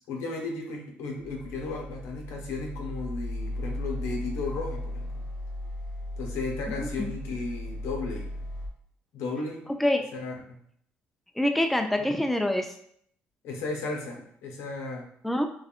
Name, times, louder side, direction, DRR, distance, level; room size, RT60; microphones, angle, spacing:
voice 1, 0.1-5.2 6.2-8.4 9.1-9.7 10.1-10.6 12.0-12.1 13.4-15.1, left 3 dB, 80° left, 1 dB, 1.1 m, -35 dB
sound 1, 1.2-8.7, left 1 dB, 35° left, 1.2 m, -36 dB
voice 2, 6.7-7.1 9.8-10.0 11.4-12.7 15.2-15.5, left 1 dB, 5° left, 5 dB, 0.4 m, -26 dB
6.3 x 2.3 x 2.4 m, 0.65 s
cardioid pair, 90°, 5 cm